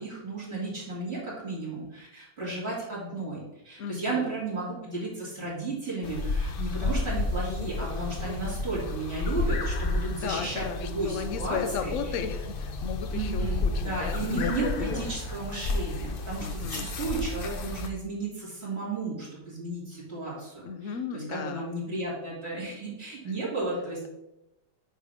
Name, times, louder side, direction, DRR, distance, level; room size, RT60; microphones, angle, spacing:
voice 1, 0.0-12.1 13.1-24.1, right 3 dB, 35° right, -7 dB, 3.1 m, -34 dB
voice 2, 3.8-4.3 10.1-14.5 16.4-16.8 20.6-21.7, left 6 dB, 60° left, 7 dB, 0.9 m, -35 dB
sound 1, 6.0-17.9, left 3 dB, 80° left, 0.5 m, -31 dB
8.9 x 3.4 x 5.1 m, 0.94 s
omnidirectional pair, 1.8 m